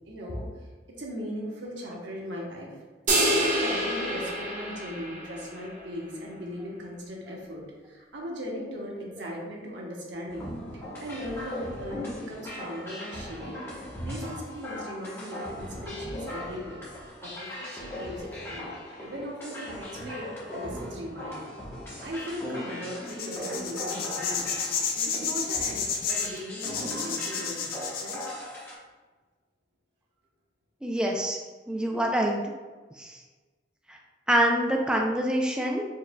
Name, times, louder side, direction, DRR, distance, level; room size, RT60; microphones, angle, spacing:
voice 1, 0.0-0.7 1.0-2.8 3.1-10.5 11.0-16.8 17.2-18.7 19.0-21.5 22.0-24.5 24.9-27.7 28.0-28.3, equal, 85° right, -2 dB, 1.0 m, -38 dB
sound 1, 3.1-5.6, right 1 dB, 45° right, 1.0 m, -27 dB
sound 2, 10.3-28.7, left 1 dB, 15° left, 1.1 m, -39 dB
sound 3, 23.1-28.3, left 6 dB, 55° left, 0.5 m, -31 dB
voice 2, 30.8-31.4 31.7-32.4 33.0-33.2 33.9-34.0 34.3-35.8, equal, 5° right, 0 dB, 0.3 m, -25 dB
4.6 x 3.5 x 2.2 m, 1.3 s
head